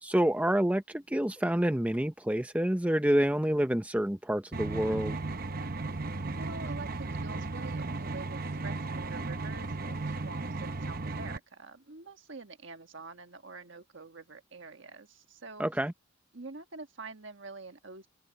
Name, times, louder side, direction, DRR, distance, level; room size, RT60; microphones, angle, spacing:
voice 1, 0.0-5.2 15.6-15.9, right 1 dB, 5° right, 0.6 m, -28 dB
sound 1, 4.5-11.4, right 3 dB, 45° right, 0.9 m, -35 dB
voice 2, 6.4-15.6 16.3-18.1, right 3 dB, 60° right, 1.5 m, -46 dB
head